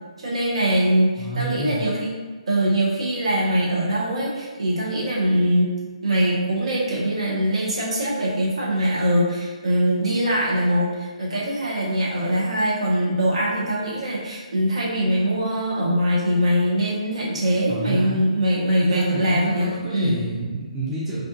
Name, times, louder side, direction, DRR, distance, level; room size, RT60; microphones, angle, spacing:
voice 1, 0.2-2.1 2.5-5.7 6.0-20.2, equal, 55° right, -5 dB, 0.8 m, -22 dB
voice 2, 1.2-1.8 17.7-18.2 18.8-21.3, right 2 dB, 10° right, -10 dB, 0.5 m, -29 dB
2.5 x 2.4 x 2.6 m, 1.3 s
figure-of-eight pair, 140°, 4 cm